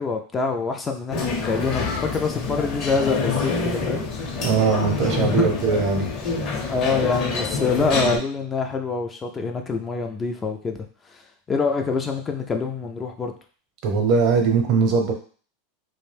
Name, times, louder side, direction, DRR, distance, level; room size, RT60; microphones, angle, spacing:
voice 1, 0.0-4.1 5.2-5.5 6.6-10.8 11.1-11.2 11.5-13.3, left 4 dB, 20° left, 4 dB, 0.3 m, -25 dB
sound 1, 1.1-8.2, left 4 dB, 45° left, 0.7 m, -27 dB
voice 2, 4.4-6.1 13.8-15.1, right 5 dB, 50° right, 3 dB, 0.7 m, -20 dB
2.4 x 2.1 x 3.2 m, 0.42 s
supercardioid pair, 120°, 0 cm